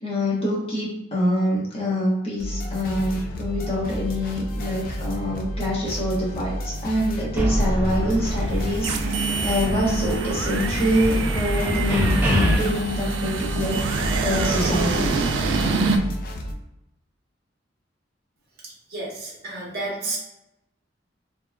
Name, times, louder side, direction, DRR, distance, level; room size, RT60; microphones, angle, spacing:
voice 1, 0.0-13.8 14.2-15.1, left 1 dB, 30° left, -6 dB, 0.9 m, -25 dB
sound 1, 2.4-16.5, equal, 50° left, 0.4 m, -31 dB
sound 2, 7.4-9.0 9.3-12.5, equal, 10° right, 0.5 m, -25 dB
sound 3, 8.2-16.0, right 4 dB, 80° right, 0.3 m, -26 dB
voice 2, 18.9-20.2, right 2 dB, 55° right, -3 dB, 0.9 m, -31 dB
2.9 x 2.1 x 2.2 m, 0.88 s
head